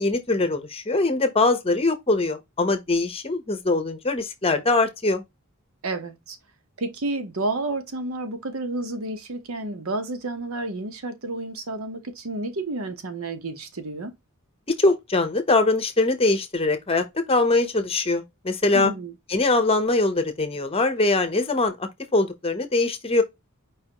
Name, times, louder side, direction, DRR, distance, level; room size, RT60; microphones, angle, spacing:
voice 1, 0.0-5.2 14.8-18.9 19.3-23.2, left 2 dB, 25° left, 0.8 m, -22 dB
voice 2, 5.8-6.4 6.8-14.1 18.7-19.1, right 2 dB, 70° right, 1.0 m, -30 dB
4.9 x 3.5 x 2.9 m
head